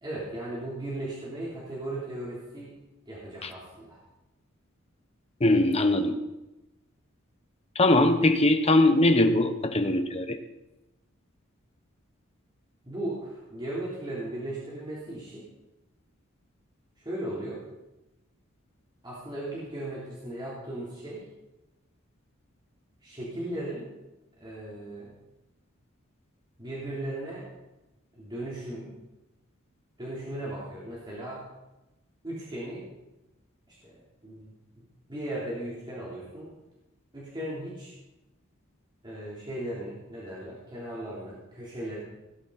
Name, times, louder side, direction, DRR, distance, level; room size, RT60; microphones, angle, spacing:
voice 1, 0.0-2.7 3.1-4.0 12.9-15.4 17.0-17.6 19.0-21.2 23.0-23.9 24.4-25.1 26.6-27.5 28.1-28.9 30.0-31.4 32.2-32.9 33.7-36.5 37.1-37.9 39.0-42.0, right 1 dB, 20° right, -8 dB, 3.7 m, -37 dB
voice 2, 5.4-6.2 7.7-10.4, left 1 dB, 30° left, 8 dB, 1.1 m, -21 dB
18.0 x 10.5 x 4.3 m, 0.99 s
head